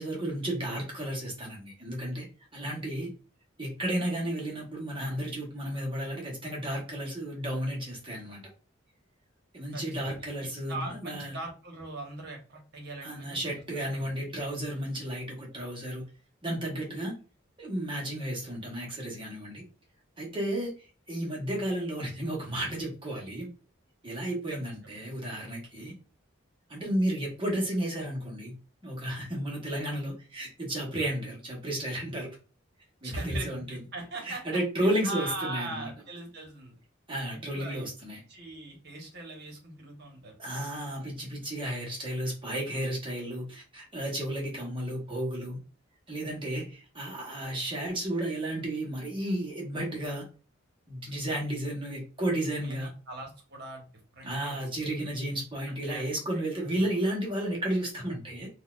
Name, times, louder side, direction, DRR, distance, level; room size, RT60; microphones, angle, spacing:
voice 1, 0.0-2.3 2.5-3.1 3.6-8.4 9.5-11.4 13.0-16.0 16.4-17.2 17.6-19.6 20.2-23.5 24.0-25.9 26.7-28.5 28.8-32.4 33.0-33.8 34.2-35.9 37.1-38.2 40.4-45.6 46.1-50.3 50.9-52.9 54.2-58.5, right 1 dB, 25° right, -2 dB, 1.0 m, -33 dB
voice 2, 9.7-10.2 10.7-13.5 13.9-14.1 24.5-24.8 33.0-36.8 37.3-37.9 38.3-40.4 52.6-53.9 54.1-55.3 55.6-56.1 56.6-56.8, right 2 dB, 55° right, 1 dB, 1.1 m, -40 dB
4.0 x 2.3 x 2.4 m, 0.35 s
head